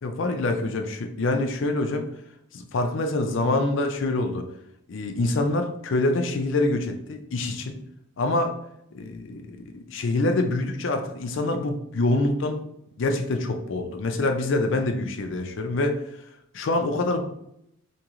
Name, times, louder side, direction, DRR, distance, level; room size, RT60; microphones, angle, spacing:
voice 1, 0.0-2.1 2.5-4.5 4.9-7.8 8.2-8.5 8.9-12.6 13.0-16.0 16.5-17.2, left 2 dB, 65° left, 5 dB, 0.4 m, -25 dB
3.0 x 2.8 x 3.6 m, 0.76 s
head